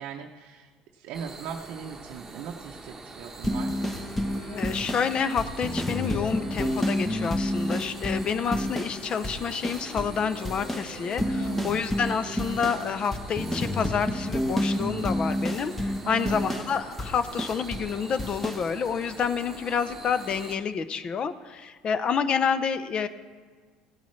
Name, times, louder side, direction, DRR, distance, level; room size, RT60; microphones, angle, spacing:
voice 1, 0.0-3.8 11.3-11.9 16.0-16.7, right 7 dB, 65° right, 1 dB, 0.7 m, -39 dB
sound 1, 1.1-20.6, right 3 dB, 15° right, 1.1 m, -44 dB
sound 2, 3.4-9.0 9.2-10.2 10.4-17.9 18.2-18.6, left 1 dB, 10° left, 1.0 m, -29 dB
Violin - G major, 3.7-13.2, left 2 dB, 60° left, 2.3 m, -46 dB
voice 2, 4.5-23.1, left 6 dB, 40° left, 12 dB, 0.6 m, -28 dB
16.0 x 8.4 x 3.2 m, 1.5 s
supercardioid pair, 105°, 3 cm